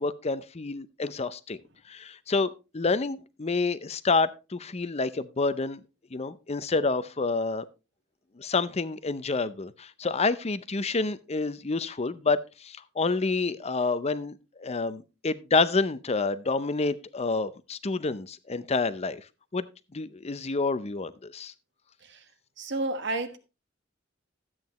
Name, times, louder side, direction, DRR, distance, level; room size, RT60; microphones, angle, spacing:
voice 1, 0.0-1.6 1.9-2.5 2.7-5.8 6.1-7.6 8.4-19.2 19.5-19.7 19.9-21.5, left 3 dB, 35° left, 0.6 m, -28 dB
voice 2, 22.6-23.4, right 2 dB, 65° right, 1.5 m, -31 dB
13.0 x 8.8 x 3.1 m
head